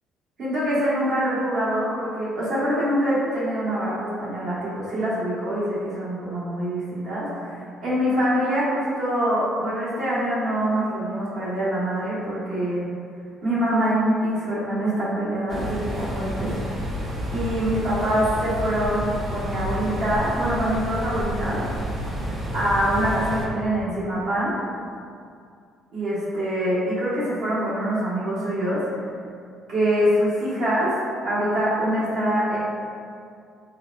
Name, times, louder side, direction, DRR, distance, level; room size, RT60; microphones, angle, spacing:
voice 1, 0.4-7.6 7.8-12.8 13.4-16.6 17.3-21.6 22.5-24.6 25.9-28.8 29.7-30.9 31.2-32.6, equal, 65° right, -10 dB, 1.4 m, -24 dB
sound 1, 15.5-23.5, equal, 50° right, 0.7 m, -30 dB
3.7 x 2.2 x 2.4 m, 2.3 s
hypercardioid pair, 60°, 0 cm